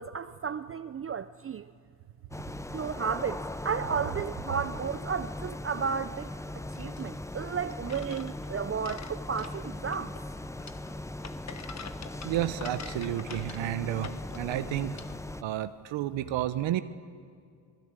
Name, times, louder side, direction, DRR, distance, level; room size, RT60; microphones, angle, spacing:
voice 1, 0.0-1.7 2.7-6.3 6.7-10.1, right 6 dB, 30° right, 0.6 m, -33 dB
sound 1, 2.3-15.4, left 1 dB, 5° left, 0.7 m, -39 dB
sound 2, 6.7-15.2, left 6 dB, 35° left, 1.3 m, -47 dB
voice 2, 12.2-15.0 15.4-16.8, right 13 dB, 65° right, 1.0 m, -31 dB
25.5 x 20.5 x 9.0 m
supercardioid pair, 70°, 48 cm